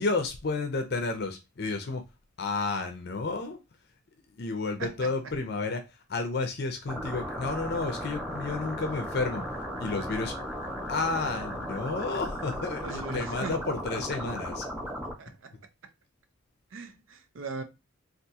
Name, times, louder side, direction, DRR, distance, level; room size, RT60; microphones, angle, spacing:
voice 1, 0.0-2.0 2.4-3.6 4.4-9.4 9.8-10.3 10.9-14.7, left 3 dB, 50° left, 0.5 m, -31 dB
voice 2, 4.8-5.1 12.8-13.6 15.2-15.5 16.7-17.6, right 4 dB, 75° right, 0.5 m, -39 dB
sound 1, 6.9-15.1, equal, 10° right, 0.7 m, -36 dB
3.5 x 2.5 x 2.7 m
head